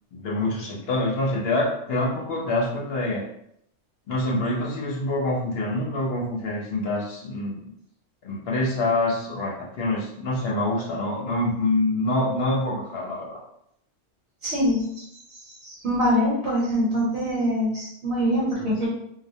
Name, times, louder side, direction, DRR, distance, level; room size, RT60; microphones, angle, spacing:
voice 1, 0.1-3.2 4.1-7.7 8.2-13.4 18.6-18.7, left 2 dB, 65° left, -2 dB, 0.7 m, -26 dB
voice 2, 14.4-15.0 15.6-18.9, equal, 70° right, -6 dB, 1.0 m, -24 dB
2.3 x 2.0 x 2.6 m, 0.73 s
omnidirectional pair, 1.2 m